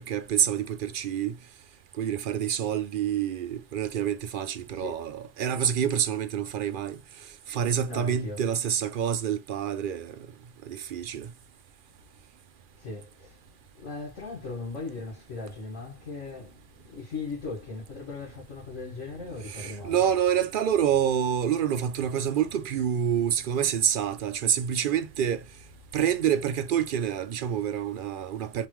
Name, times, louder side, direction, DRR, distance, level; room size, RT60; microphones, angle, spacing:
voice 1, 0.0-1.4 2.0-7.0 7.5-10.2 10.7-11.3 19.4-25.4 25.9-28.7, right 9 dB, 65° right, 0.5 m, -27 dB
voice 2, 4.7-5.1 7.8-8.5 12.8-13.4 13.7-20.0, left 3 dB, 65° left, 2.1 m, -38 dB
4.2 x 3.5 x 3.0 m
omnidirectional pair, 1.4 m